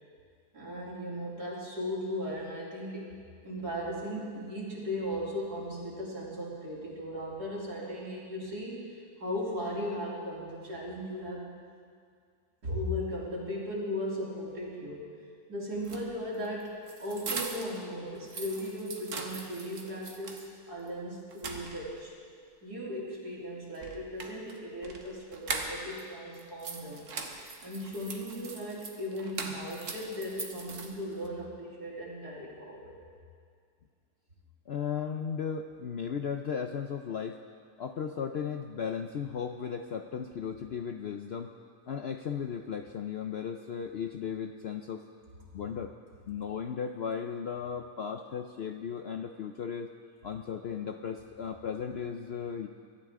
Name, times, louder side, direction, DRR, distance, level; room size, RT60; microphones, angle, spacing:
voice 1, 0.5-3.2 3.4-11.6 12.6-15.1 15.5-16.7 17.0-22.1 22.6-27.0 27.6-32.9, equal, 85° right, -5 dB, 3.7 m, -37 dB
sound 1, 15.7-17.8 18.2-20.5 20.9-21.0 21.3-22.1 23.7-26.0 26.3-31.3, right 4 dB, 55° right, 1.5 m, -41 dB
voice 2, 34.7-37.4 37.8-41.5 41.9-45.0 45.5-45.9 46.3-49.9 50.2-52.7, left 7 dB, 65° left, 6 dB, 0.6 m, -36 dB
23.5 x 12.5 x 3.7 m, 2.1 s
omnidirectional pair, 1.7 m